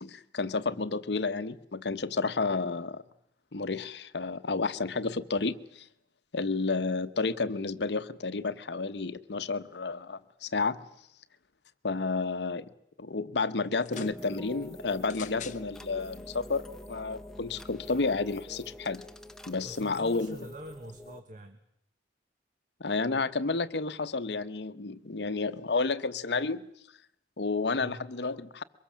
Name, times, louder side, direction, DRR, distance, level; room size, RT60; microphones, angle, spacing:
voice 1, 0.0-3.0 3.5-5.9 6.3-10.8 11.8-12.6 13.0-19.1 19.5-20.4 22.8-26.7 27.4-28.6, left 3 dB, 70° left, 0.9 m, -31 dB
sound 1, 13.7-14.2 15.0-15.6 16.5-16.6, left 10 dB, 45° left, 0.8 m, -45 dB
sound 2, 13.9-21.2, equal, 5° left, 1.0 m, -46 dB
voice 2, 19.6-21.6 27.8-28.1, right 1 dB, 45° right, 1.4 m, -45 dB
24.0 x 21.5 x 7.3 m
head